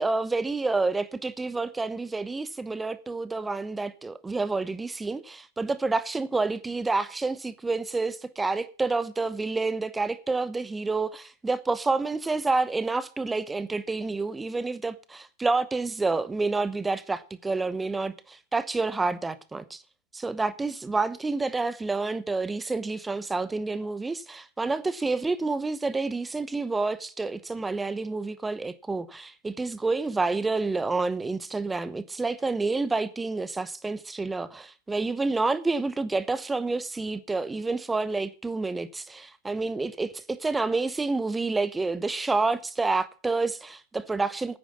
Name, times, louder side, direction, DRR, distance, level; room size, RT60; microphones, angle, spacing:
voice 1, 0.0-19.8 20.1-44.6, right 3 dB, 10° right, 0.9 m, -28 dB
9.6 x 9.3 x 6.8 m
figure-of-eight pair, 90°, 0 cm